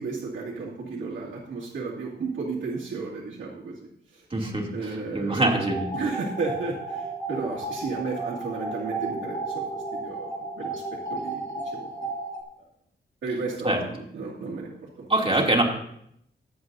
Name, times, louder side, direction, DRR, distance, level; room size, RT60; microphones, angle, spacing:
voice 1, 0.0-5.6 5.9-10.8 11.1-12.1 13.2-15.1, right 4 dB, 90° right, -7 dB, 2.4 m, -34 dB
voice 2, 4.3-4.7 5.1-5.9 13.6-13.8 15.1-15.6, right 2 dB, 30° right, -1 dB, 2.7 m, -23 dB
sound 1, 5.4-12.4, right 3 dB, 20° left, 2.6 m, -33 dB
21.5 x 7.9 x 2.7 m, 0.73 s
cardioid pair, 75°, 19 cm